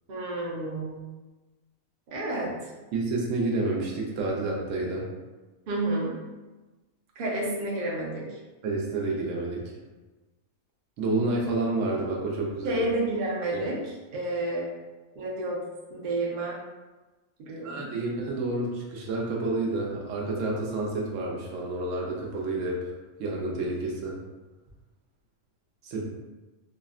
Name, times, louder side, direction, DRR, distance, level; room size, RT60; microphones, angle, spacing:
voice 1, 0.1-1.0 2.1-2.5 5.7-6.2 7.2-8.4 12.6-13.8 14.1-14.7 15.2-15.6 15.9-16.6 17.4-18.0, right 2 dB, 55° right, -4 dB, 0.7 m, -30 dB
voice 2, 2.9-5.1 8.6-9.7 11.0-12.8 13.5-13.7 17.6-22.9 23.2-24.2 25.8-26.0, right 2 dB, 75° right, -2 dB, 0.9 m, -29 dB
3.4 x 2.1 x 2.4 m, 1.2 s
omnidirectional pair, 1.4 m